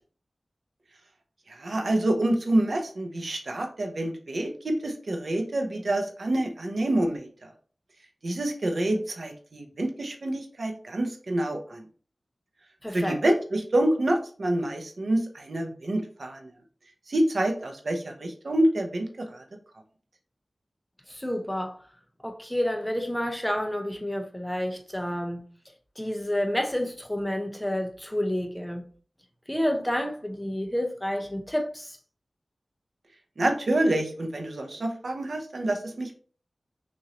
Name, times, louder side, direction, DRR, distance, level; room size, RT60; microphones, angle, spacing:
voice 1, 1.5-7.3 8.2-11.8 12.9-16.5 17.1-19.4 33.4-36.1, right 1 dB, 65° right, 0.9 m, -27 dB
voice 2, 12.8-13.2 21.1-21.8 22.2-25.4 26.0-28.8 29.5-32.0, equal, 10° left, 0.7 m, -29 dB
6.3 x 2.7 x 3.0 m
wide cardioid pair, 85°, 0 cm